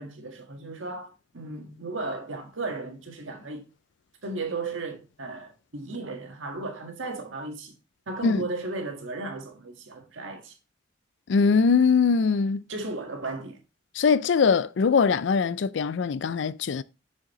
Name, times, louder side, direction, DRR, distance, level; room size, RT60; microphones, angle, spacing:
voice 1, 0.0-3.7 4.2-7.8 8.1-10.5 12.7-13.6, right 2 dB, 85° right, 1.6 m, -35 dB
voice 2, 11.3-12.6 14.0-16.8, left 5 dB, 70° left, 0.4 m, -22 dB
6.6 x 6.3 x 3.0 m
head